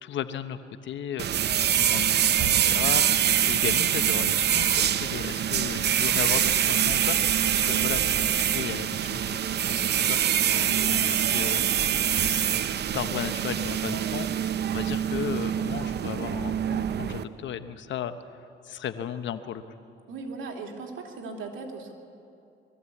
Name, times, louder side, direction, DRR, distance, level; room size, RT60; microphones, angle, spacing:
voice 1, 0.0-11.6 12.2-18.2 18.6-19.6, left 9 dB, 70° left, 11 dB, 1.0 m, -35 dB
sound 1, 1.2-17.2, right 9 dB, 55° right, 0.7 m, -25 dB
voice 2, 20.1-21.9, right 4 dB, 80° right, 1 dB, 2.7 m, -38 dB
21.5 x 14.5 x 8.4 m, 2.6 s
cardioid pair, 90°, 20 cm